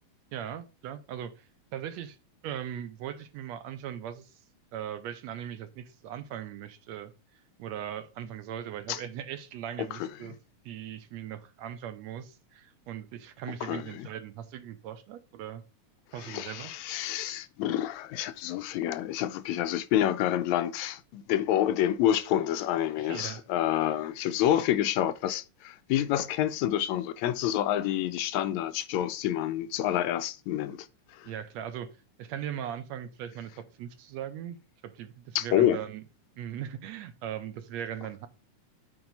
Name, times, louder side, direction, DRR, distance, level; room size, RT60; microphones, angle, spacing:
voice 1, 0.3-2.2 2.4-4.4 4.7-10.4 10.7-15.6 16.1-16.7 23.0-23.4 31.3-31.9 32.2-34.6 34.8-36.0 36.4-38.3, right 10 dB, 75° right, 1.8 m, -39 dB
voice 2, 13.6-14.1 16.2-31.3 35.4-35.8, left 12 dB, 80° left, 1.9 m, -28 dB
8.8 x 3.6 x 5.2 m
omnidirectional pair, 3.4 m